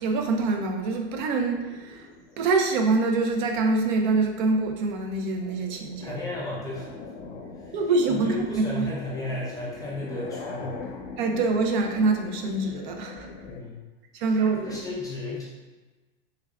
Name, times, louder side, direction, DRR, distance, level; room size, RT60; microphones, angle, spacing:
voice 1, 0.0-2.1 2.4-6.2 7.7-8.9 11.2-13.3 14.1-14.8, right 3 dB, 55° right, 3 dB, 0.5 m, -25 dB
sound 1, 1.5-3.5 4.0-4.4 4.8-13.6, left 4 dB, 70° left, 0.6 m, -42 dB
voice 2, 6.0-6.9 7.6-7.8 8.1-10.9 13.5-13.8 14.6-15.5, left 2 dB, 10° left, -6 dB, 0.3 m, -34 dB
3.4 x 3.4 x 2.3 m, 1.2 s
supercardioid pair, 150°, 30 cm